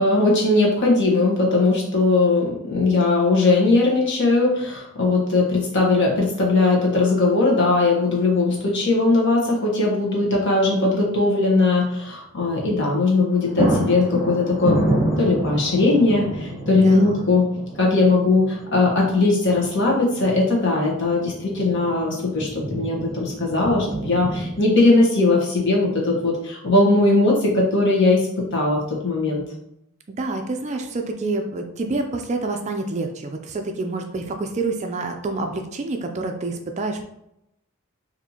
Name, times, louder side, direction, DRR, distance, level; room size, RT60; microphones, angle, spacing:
voice 1, 0.0-14.8 15.2-17.4 17.8-29.4, left 3 dB, 55° left, -3 dB, 1.1 m, -19 dB
sound 1, 8.3-8.7 9.0-9.1 12.8-13.0 13.2-24.6, right 1 dB, 10° right, 1.1 m, -29 dB
voice 2, 16.7-17.3 30.1-37.0, right 3 dB, 30° right, 4 dB, 0.3 m, -28 dB
4.2 x 2.8 x 2.8 m, 0.80 s
head